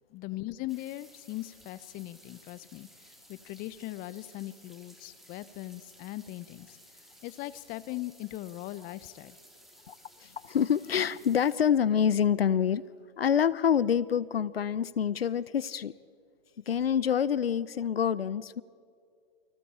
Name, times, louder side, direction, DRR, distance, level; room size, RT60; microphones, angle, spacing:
voice 1, 0.1-2.9 3.3-6.8 7.2-9.4, left 17 dB, 30° left, 0.9 m, -39 dB
sound 1, 0.7-11.6, equal, ahead, 3.8 m, -57 dB
voice 2, 9.9-12.8 13.2-15.9 16.7-18.6, left 8 dB, 80° left, 0.7 m, -27 dB
29.0 x 25.5 x 4.4 m
hypercardioid pair, 115°, 30 cm